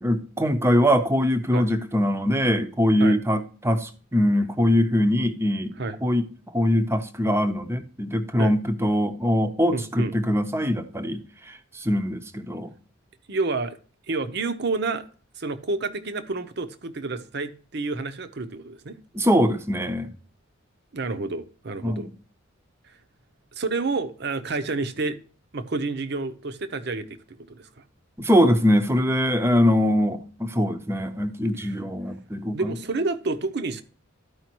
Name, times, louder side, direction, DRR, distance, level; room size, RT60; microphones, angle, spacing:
voice 1, 0.0-5.7 6.0-6.2 6.5-12.7 19.1-20.1 21.8-22.1 28.2-32.7, equal, 10° right, 0.6 m, -22 dB
voice 2, 9.7-10.1 13.3-13.8 14.1-15.0 15.4-19.0 20.9-22.1 23.6-25.2 25.5-27.2 27.5-27.7 32.5-33.8, right 3 dB, 55° right, 0.7 m, -29 dB
13.0 x 4.9 x 3.0 m
head